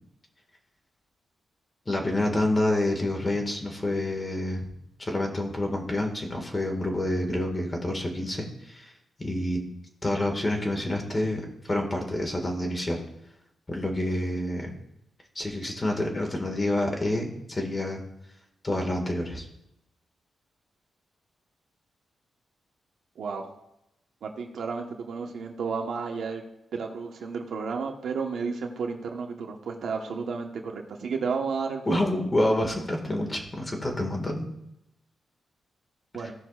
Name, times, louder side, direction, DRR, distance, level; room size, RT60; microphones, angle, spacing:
voice 1, 1.9-4.6 5.0-8.9 9.2-9.6 10.0-13.0 13.7-14.7 15.4-18.0 18.6-19.5 31.9-34.5 36.2-36.3, left 1 dB, 20° left, 1 dB, 1.8 m, -28 dB
voice 2, 23.2-23.5 24.2-26.4 26.7-32.0 36.1-36.3, right 5 dB, 70° right, 3 dB, 1.1 m, -32 dB
16.5 x 6.0 x 2.4 m, 0.84 s
cardioid pair, 115°, 0 cm